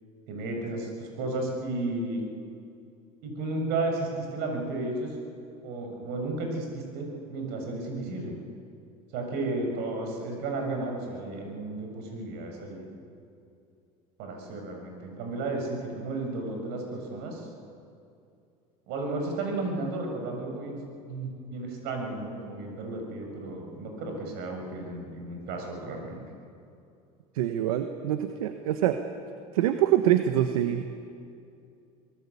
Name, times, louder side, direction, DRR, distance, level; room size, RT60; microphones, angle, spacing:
voice 1, 0.3-2.2 3.2-5.1 5.6-8.3 9.1-12.9 14.2-17.5 18.9-26.2, right 2 dB, 70° right, 2 dB, 6.9 m, -33 dB
voice 2, 27.3-29.0 29.5-30.8, right 12 dB, 85° right, 8 dB, 1.2 m, -25 dB
25.0 x 18.5 x 8.5 m, 2.6 s
supercardioid pair, 90°, 18 cm